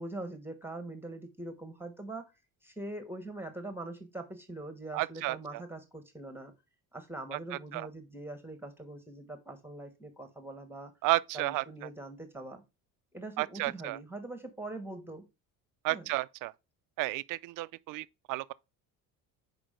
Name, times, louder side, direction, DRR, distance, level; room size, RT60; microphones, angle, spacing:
voice 1, 0.0-2.3 2.6-6.5 6.9-10.9 11.3-12.6 13.1-15.2 15.9-16.1, right 2 dB, 5° right, 1.3 m, -42 dB
voice 2, 4.9-5.4 7.3-7.9 11.0-11.6 13.4-14.0 15.8-16.5 17.0-18.5, right 18 dB, 60° right, 0.5 m, -32 dB
6.0 x 5.0 x 5.0 m
cardioid pair, 125°, 36 cm